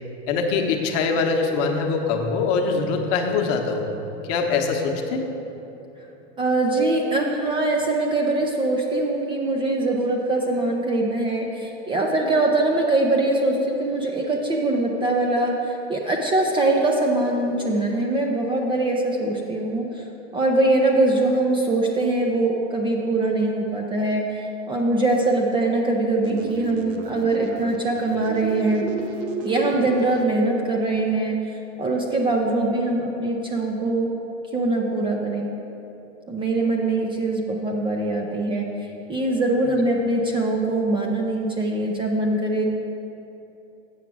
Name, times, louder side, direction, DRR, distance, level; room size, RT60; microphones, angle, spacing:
voice 1, 0.3-3.9 4.2-5.2, left 4 dB, 40° left, 3 dB, 1.0 m, -23 dB
voice 2, 6.4-20.0 20.3-28.9 29.4-34.1 34.5-35.5 36.3-42.6, right 2 dB, 15° right, 0 dB, 0.5 m, -22 dB
sound 1, 26.2-30.2, right 4 dB, 40° right, 0.8 m, -33 dB
8.4 x 5.8 x 6.1 m, 3.0 s
hypercardioid pair, 130°, 36 cm